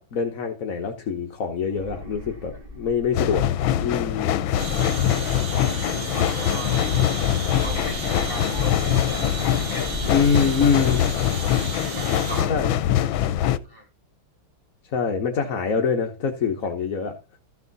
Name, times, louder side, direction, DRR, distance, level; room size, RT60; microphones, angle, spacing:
voice 1, 0.0-3.4 3.8-4.3 10.1-11.0 12.5-12.7 14.9-17.1, left 5 dB, 50° left, 3 dB, 1.4 m, -24 dB
sound 1, 1.7-3.5 4.4-5.9 7.3-9.4 9.7-11.4, left 4 dB, 60° right, 4.8 m, -38 dB
sound 2, 3.1-13.6, left 11 dB, 85° left, 1.5 m, -23 dB
sound 3, 4.6-12.4, right 5 dB, 85° right, 2.7 m, -34 dB
voice 2, 4.8-5.7 6.1-7.3 7.6-9.9 11.8-12.6 13.6-13.9, equal, 30° right, -1 dB, 2.6 m, -39 dB
14.0 x 7.0 x 4.1 m, 0.29 s
omnidirectional pair, 2.1 m